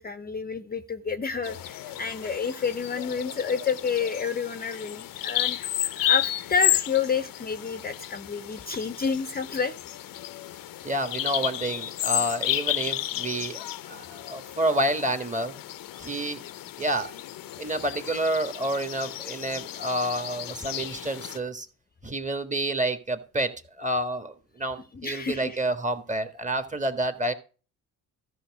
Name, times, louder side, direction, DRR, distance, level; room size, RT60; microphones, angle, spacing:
voice 1, 0.0-9.7 24.9-25.6, left 5 dB, 25° left, 11 dB, 0.7 m, -29 dB
Bird vocalization bird call bird song, 1.4-21.4, left 14 dB, 65° left, 0.8 m, -32 dB
voice 2, 10.8-15.5 16.0-16.4 16.8-17.1 17.6-21.7 22.0-27.3, right 1 dB, 20° right, 9 dB, 1.7 m, -29 dB
13.0 x 5.9 x 4.8 m, 0.36 s
supercardioid pair, 70°, 37 cm